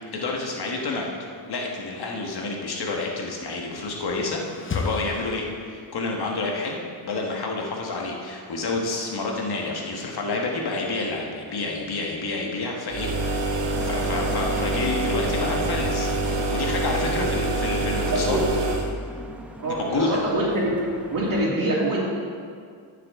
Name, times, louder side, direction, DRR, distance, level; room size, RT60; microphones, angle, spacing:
voice 1, 0.1-1.1 1.5-4.4 4.7-13.1 13.8-18.4 19.8-20.2, left 3 dB, 55° left, 0 dB, 1.6 m, -29 dB
sound 1, 3.9-6.1, left 4 dB, 25° left, 0.7 m, -34 dB
sound 2, 12.9-18.9, right 2 dB, 70° right, 1.3 m, -26 dB
sound 3, 13.7-21.5, right 1 dB, 5° right, 0.9 m, -41 dB
voice 2, 18.1-18.4 19.6-20.7 21.1-22.0, right 1 dB, 45° right, -5 dB, 2.8 m, -25 dB
13.5 x 6.7 x 3.7 m, 2.1 s
cardioid pair, 95°, 45 cm